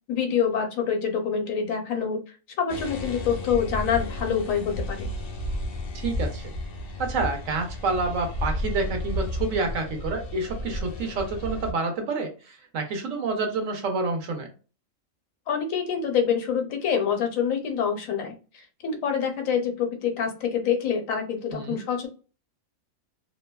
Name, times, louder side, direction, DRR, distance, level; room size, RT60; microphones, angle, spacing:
voice 1, 0.1-2.2 2.6-5.1 15.5-22.1, left 7 dB, 75° left, 4 dB, 1.0 m, -26 dB
sound 1, 2.7-11.7, left 1 dB, 60° left, 0.6 m, -32 dB
voice 2, 5.9-6.5 7.0-14.5 21.5-21.8, right 3 dB, 70° right, 4 dB, 1.0 m, -28 dB
2.6 x 2.1 x 2.2 m, 0.34 s
omnidirectional pair, 1.4 m